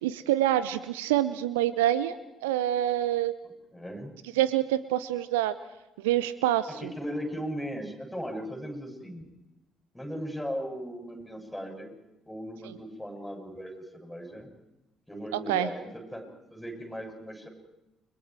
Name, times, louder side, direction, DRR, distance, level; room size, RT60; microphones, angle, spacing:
voice 1, 0.0-2.2 2.4-3.3 4.4-5.5 6.0-6.7 15.5-15.7, right 13 dB, 70° right, 16 dB, 0.7 m, -26 dB
voice 2, 3.4-4.1 6.8-9.2 9.9-11.9 12.3-14.5 15.1-17.5, equal, 5° left, 3 dB, 7.6 m, -37 dB
29.5 x 23.5 x 4.7 m, 0.92 s
figure-of-eight pair, 50°, 0 cm